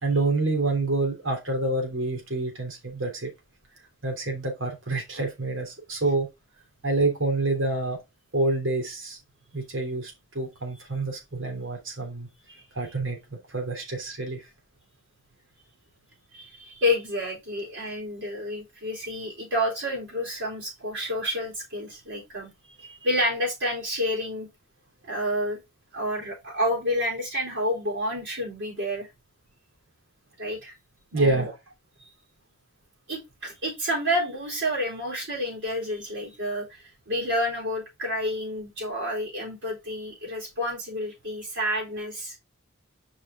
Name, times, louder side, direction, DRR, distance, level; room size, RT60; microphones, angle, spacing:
voice 1, 0.0-3.3 4.0-6.3 6.8-8.0 8.3-9.2 9.5-12.3 12.7-14.4 31.1-31.5, right 2 dB, 80° right, 3.2 m, -27 dB
voice 2, 16.3-22.5 22.8-24.5 25.0-25.6 25.9-29.1 30.4-30.8 31.1-31.5 32.0-32.1 33.1-42.4, left 1 dB, 65° right, 4.1 m, -29 dB
5.7 x 5.1 x 3.7 m
head